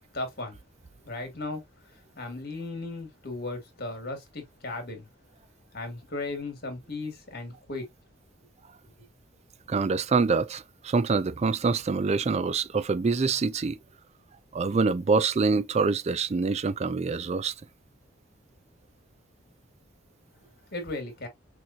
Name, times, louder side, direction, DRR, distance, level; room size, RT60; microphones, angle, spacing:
voice 1, 0.1-0.6 1.0-1.6 2.2-5.1 5.7-7.9 20.7-21.3, left 2 dB, 55° left, 2.3 m, -36 dB
voice 2, 9.7-13.8 14.5-17.5, right 4 dB, 35° right, 0.4 m, -25 dB
6.1 x 3.0 x 2.7 m
head